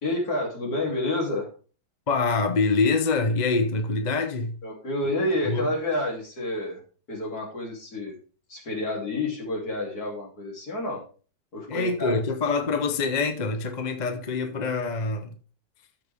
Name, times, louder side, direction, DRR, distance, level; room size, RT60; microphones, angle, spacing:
voice 1, 0.0-1.5 4.6-6.8 7.1-8.2 8.5-11.0 11.5-12.2, left 1 dB, 60° left, 3.7 m, -29 dB
voice 2, 2.1-4.6 5.2-5.7 11.7-15.3, left 4 dB, 30° left, 0.8 m, -25 dB
13.5 x 6.3 x 3.6 m
omnidirectional pair, 1.9 m